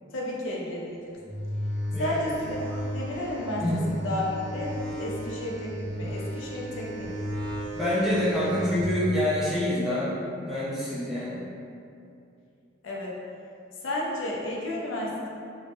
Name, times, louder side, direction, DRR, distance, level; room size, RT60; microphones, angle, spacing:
voice 1, 0.1-1.2 2.0-3.6 3.9-7.2 12.8-13.2 13.8-15.3, left 1 dB, 75° left, -3 dB, 0.4 m, -32 dB
sound 1, 1.3-8.9, equal, 85° right, 0.5 m, -34 dB
voice 2, 7.7-10.1 10.4-11.5, left 1 dB, ahead, -10 dB, 0.4 m, -26 dB
2.1 x 2.0 x 2.9 m, 2.5 s
head